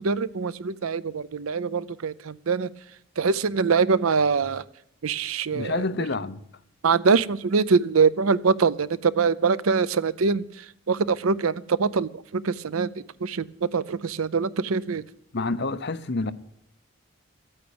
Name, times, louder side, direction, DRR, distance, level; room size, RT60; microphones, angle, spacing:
voice 1, 0.0-2.7 3.2-4.6 5.0-5.9 6.8-10.4 10.9-12.9 13.2-15.0, right 5 dB, 80° right, 0.6 m, -23 dB
voice 2, 5.5-6.4 15.3-16.3, left 3 dB, 50° left, 0.7 m, -28 dB
14.0 x 8.8 x 8.7 m
head